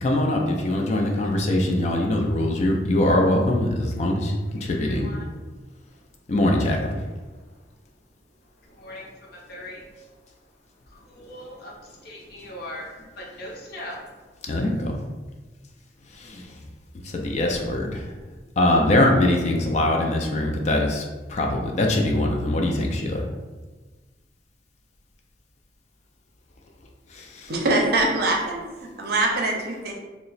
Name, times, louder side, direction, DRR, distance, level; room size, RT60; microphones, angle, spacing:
voice 1, 0.0-4.3 4.6-5.1 6.3-7.0 14.5-15.0 16.1-16.6 17.0-18.1 18.6-23.2 27.1-27.5, left 1 dB, 40° left, 1 dB, 0.3 m, -22 dB
voice 2, 4.7-5.4 7.2-7.6 8.6-10.2 10.9-14.2, left 1 dB, 60° left, -3 dB, 0.7 m, -41 dB
voice 3, 27.5-29.9, right 2 dB, 60° right, 1 dB, 0.5 m, -23 dB
2.9 x 2.0 x 3.9 m, 1.3 s
head